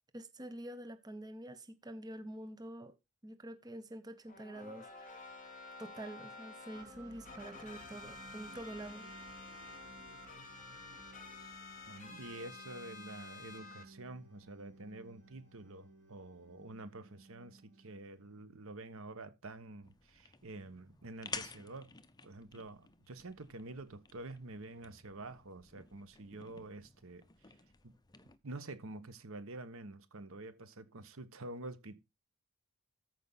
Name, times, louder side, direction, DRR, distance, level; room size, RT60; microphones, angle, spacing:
voice 1, 0.1-3.0 3.2-9.1, right 1 dB, 20° right, 0.7 m, -47 dB
sound 1, 4.3-6.8 7.3-13.8, left 3 dB, 35° left, 3.0 m, -51 dB
sound 2, 6.7-18.5, right 2 dB, 35° right, 3.1 m, -57 dB
voice 2, 11.9-21.9 22.2-27.3 27.8-28.0 28.4-32.0, right 2 dB, 65° right, 1.1 m, -48 dB
sound 3, 19.8-28.4, left 5 dB, 20° left, 0.6 m, -52 dB
13.5 x 5.2 x 4.0 m
head